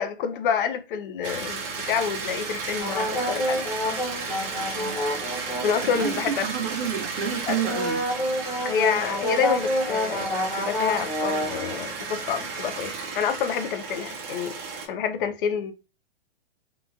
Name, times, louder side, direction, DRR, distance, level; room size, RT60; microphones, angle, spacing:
voice 1, 0.0-3.7 4.1-4.2 5.6-6.4 7.5-7.6 8.6-10.3 10.6-14.6 14.9-15.7, left 7 dB, 50° left, 0.5 m, -28 dB
sound 1, 1.2-14.9, right 4 dB, 20° right, 0.4 m, -34 dB
sound 2, 2.8-6.2 7.6-11.9, left 1 dB, 80° left, 1.4 m, -28 dB
voice 2, 4.6-5.0 5.9-8.0, right 8 dB, 70° right, 0.7 m, -30 dB
3.0 x 2.3 x 2.4 m
hypercardioid pair, 155°, 33 cm